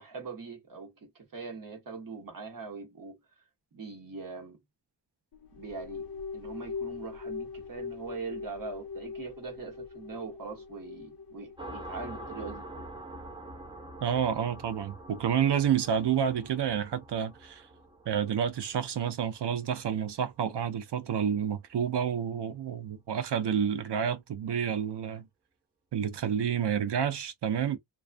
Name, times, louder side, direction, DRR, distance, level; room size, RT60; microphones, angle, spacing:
voice 1, 0.0-3.2 3.7-4.6 5.5-6.1 6.3-12.7, right 4 dB, 55° right, 1.1 m, -42 dB
sound 1, 5.3-12.9, left 5 dB, 60° left, 0.7 m, -42 dB
sound 2, 11.6-20.8, right 1 dB, 15° right, 0.4 m, -46 dB
voice 2, 14.0-17.7 18.1-25.3 25.9-27.8, right 8 dB, 90° right, 0.6 m, -29 dB
2.3 x 2.3 x 2.4 m
wide cardioid pair, 125°, 40 cm